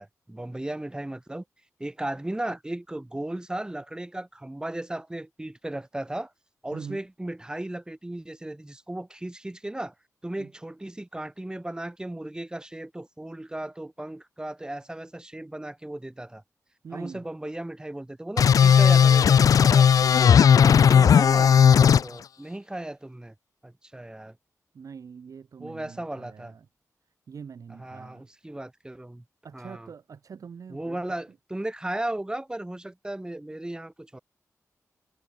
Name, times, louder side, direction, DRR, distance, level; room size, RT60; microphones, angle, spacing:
voice 1, 0.0-1.4 1.8-6.3 6.6-9.9 10.2-16.4 16.9-19.9 20.6-23.3 23.6-24.4 25.6-26.5 27.8-29.2 29.5-29.9 30.7-34.2, right 1 dB, 15° right, 7.8 m, -36 dB
voice 2, 16.8-17.2 24.7-26.7 27.3-28.3 29.4-31.2, right 6 dB, 70° right, 4.0 m, -43 dB
sound 1, 18.4-22.0, left 7 dB, 75° left, 0.5 m, -16 dB
wide cardioid pair, 100°, 6 cm